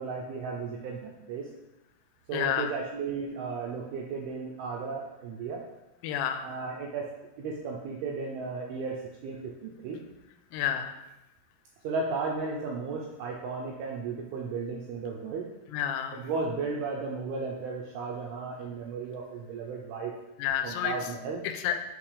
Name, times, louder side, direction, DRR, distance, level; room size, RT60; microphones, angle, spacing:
voice 1, 0.0-1.5 2.3-5.6 6.4-7.1 7.4-10.0 11.8-15.5 16.1-20.1 20.6-21.4, right 4 dB, 85° right, 0 dB, 2.2 m, -34 dB
voice 2, 2.3-2.7 6.0-6.4 10.5-11.0 15.7-16.2 20.4-20.9 21.4-21.8, left 10 dB, 85° left, 7 dB, 2.8 m, -30 dB
6.0 x 5.6 x 3.3 m, 0.99 s
omnidirectional pair, 5.0 m